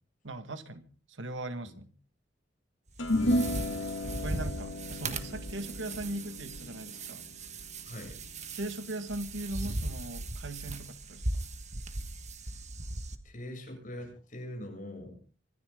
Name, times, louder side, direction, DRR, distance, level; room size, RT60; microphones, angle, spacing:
voice 1, 0.2-1.9 4.0-7.3 8.6-11.4, right 1 dB, 85° right, 1.8 m, -39 dB
sound 1, 2.9-13.2, right 2 dB, 40° right, 1.5 m, -38 dB
sound 2, 3.0-9.5, left 1 dB, 85° left, 2.3 m, -34 dB
voice 2, 7.8-8.2 13.2-15.2, left 1 dB, 45° left, 7.6 m, -42 dB
25.5 x 14.0 x 3.8 m
head